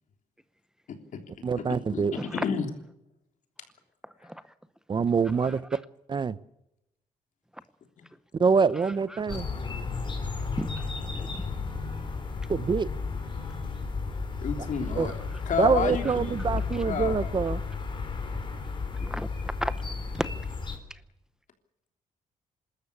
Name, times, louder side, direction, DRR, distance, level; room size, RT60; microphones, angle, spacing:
voice 1, 0.9-1.6 1.9-2.7 4.2-4.3 8.0-8.1 9.3-9.4 11.4-12.3 14.1-15.1 15.4-16.4 16.8-17.3, left 6 dB, 65° left, 5 dB, 3.3 m, -32 dB
voice 2, 1.4-2.1 4.9-5.6 6.1-6.4 8.4-9.5 12.5-12.9 15.0-15.1 15.6-17.6, right 5 dB, 35° right, 17 dB, 0.7 m, -25 dB
sound 1, 9.3-20.8, left 4 dB, 35° left, 4.1 m, -33 dB
voice 3, 10.6-11.4 19.0-19.7 20.1-20.3, equal, 5° right, 12 dB, 0.8 m, -34 dB
26.5 x 13.5 x 8.6 m, 0.87 s
cardioid pair, 110°, 14 cm